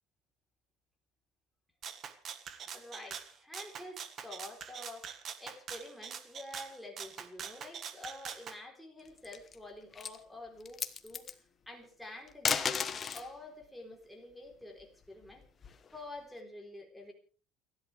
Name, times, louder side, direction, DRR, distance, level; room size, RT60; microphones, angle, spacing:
Rattle (instrument), 1.8-8.6, right 7 dB, 35° right, 1.5 m, -44 dB
voice 1, 2.7-5.1 5.4-11.3 11.7-15.4 15.9-17.1, left 1 dB, ahead, 0 dB, 3.8 m, -48 dB
sound 1, 9.1-9.6 9.9-10.2 10.6-11.3 12.3-13.3 14.8-16.0, left 6 dB, 25° left, 1.1 m, -34 dB
29.5 x 11.5 x 3.4 m, 0.38 s
cardioid pair, 155°, 0 cm